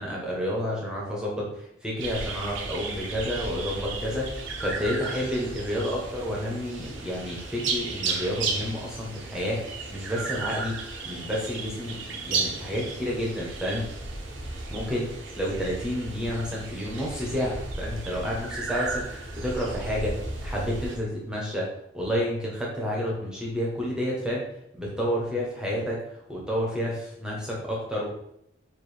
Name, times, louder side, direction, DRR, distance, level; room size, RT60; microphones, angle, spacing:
voice 1, 0.0-10.8 11.0-13.9 14.7-15.1 15.3-20.1 20.4-21.7 21.9-24.5 24.7-28.1, equal, 5° right, -4 dB, 0.9 m, -30 dB
sound 1, 2.0-21.0, right 3 dB, 70° right, 0.6 m, -34 dB
4.5 x 2.6 x 3.2 m, 0.77 s
head